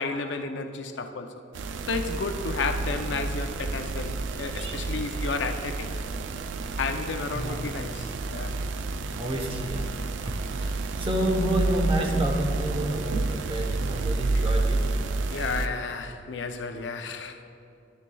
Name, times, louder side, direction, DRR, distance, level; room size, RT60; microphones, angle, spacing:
voice 1, 0.0-1.4 1.9-5.9 6.8-8.6 14.3-14.5 15.3-17.4, left 4 dB, 75° left, 7 dB, 0.5 m, -32 dB
sound 1, 1.5-15.7, right 3 dB, 80° right, 0.4 m, -30 dB
voice 2, 4.4-4.8 7.3-7.6 9.0-9.9 10.6-14.8, right 1 dB, 30° right, 2 dB, 0.9 m, -29 dB
11.0 x 10.5 x 2.3 m, 2.6 s
head